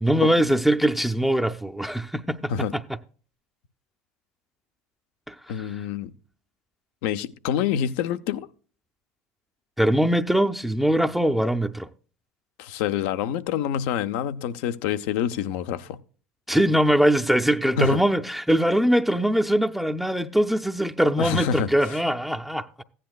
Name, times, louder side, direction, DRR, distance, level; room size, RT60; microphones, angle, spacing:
voice 1, 0.0-2.8 5.3-5.4 9.8-11.9 16.5-22.7, equal, ahead, 0.6 m, -22 dB
voice 2, 5.5-6.1 7.0-8.5 12.6-16.0 17.8-18.0 21.2-21.7, left 9 dB, 65° left, 0.7 m, -26 dB
15.0 x 10.0 x 2.3 m
hypercardioid pair, 75°, 7 cm